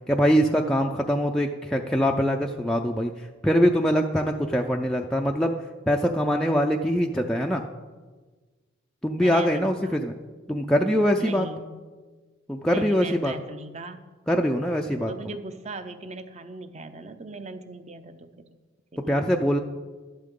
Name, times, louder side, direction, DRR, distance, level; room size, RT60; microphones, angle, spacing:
voice 1, 0.1-3.1 3.4-5.5 5.9-7.6 9.0-10.1 10.5-11.5 12.5-13.3 14.3-15.1 19.1-19.6, equal, 5° left, 1 dB, 0.4 m, -23 dB
voice 2, 9.2-10.0 11.2-11.6 12.7-14.0 15.0-18.5 18.9-19.1, right 2 dB, 35° right, 9 dB, 0.7 m, -39 dB
12.0 x 11.0 x 3.7 m, 1.3 s
head